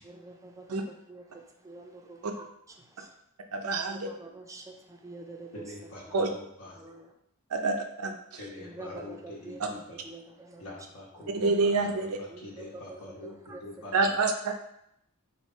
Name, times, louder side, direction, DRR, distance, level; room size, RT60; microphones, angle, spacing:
voice 1, 0.0-2.5 2.8-3.2 3.9-5.9 6.7-7.1 8.6-9.6 9.9-10.8 11.2-11.3 12.3-13.6 14.0-14.1, right 2 dB, 15° right, 3 dB, 0.4 m, -47 dB
voice 2, 3.5-4.1 6.1-6.3 7.5-8.4 9.6-9.7 11.3-12.2 13.9-14.5, right 3 dB, 85° right, 4 dB, 0.6 m, -27 dB
voice 3, 5.5-6.7 8.4-10.0 10.6-14.1, left 1 dB, 80° left, -5 dB, 1.1 m, -45 dB
3.2 x 2.8 x 4.3 m, 0.75 s
head